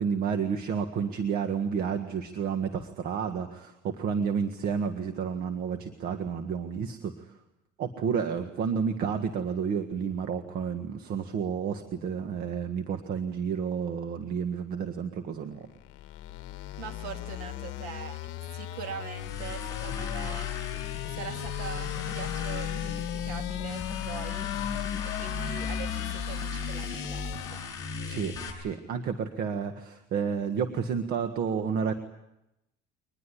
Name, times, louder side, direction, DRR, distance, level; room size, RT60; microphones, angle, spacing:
voice 1, 0.0-7.3 7.8-15.7 23.2-23.3 28.0-31.9, right 6 dB, 50° right, 7 dB, 1.6 m, -31 dB
sound 1, 15.6-27.8, left 11 dB, 65° left, 1.5 m, -37 dB
voice 2, 16.8-18.2 18.5-24.5 25.0-27.6, right 8 dB, 80° right, 5 dB, 2.7 m, -42 dB
sound 2, 19.1-28.5, left 6 dB, 15° left, 7.5 m, -36 dB
24.0 x 20.5 x 9.9 m, 0.89 s
cardioid pair, 160°, 20 cm